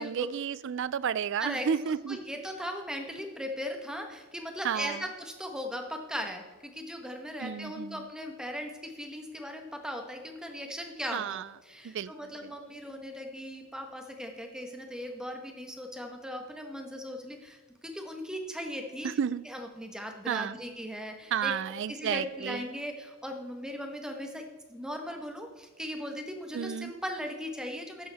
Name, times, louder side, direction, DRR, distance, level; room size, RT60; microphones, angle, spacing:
voice 1, 0.0-2.2 4.6-5.0 7.4-8.0 11.1-11.4 11.8-12.1 19.0-19.4 20.3-20.5 21.3-22.6 26.5-26.9, right 7 dB, 55° right, 19 dB, 0.3 m, -31 dB
voice 2, 1.4-17.6 17.8-19.1 19.4-21.5 21.9-24.4 24.7-28.1, equal, 5° right, 4 dB, 1.1 m, -38 dB
12.5 x 10.0 x 3.5 m, 1.3 s
head